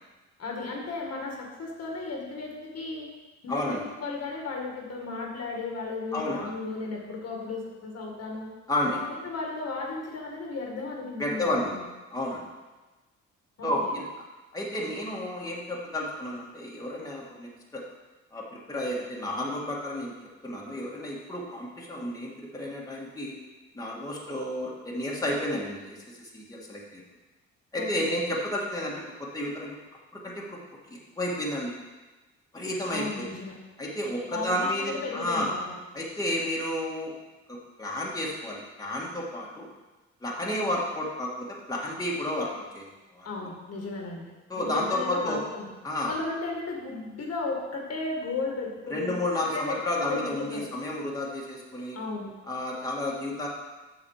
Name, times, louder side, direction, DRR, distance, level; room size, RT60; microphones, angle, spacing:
voice 1, 0.4-3.1 3.4-8.5 8.9-11.8 13.6-13.9 27.8-28.1 32.9-33.6 34.3-35.7 43.2-45.7 46.1-50.7 51.9-52.3, left 3 dB, 55° left, 0 dB, 1.9 m, -35 dB
voice 2, 3.5-3.8 6.1-6.5 8.7-9.0 11.2-11.8 12.1-12.5 13.6-14.0 14.5-17.8 18.3-20.1 20.4-23.3 23.7-27.0 27.7-29.8 30.1-30.6 30.9-31.7 32.5-33.4 33.8-35.5 35.9-37.1 37.5-39.7 40.2-42.9 43.1-43.3 44.5-45.4 45.8-46.1 48.9-52.0 52.5-53.5, left 1 dB, 10° left, -4 dB, 1.9 m, -31 dB
7.4 x 6.5 x 5.0 m, 1.2 s
cardioid pair, 90°, 30 cm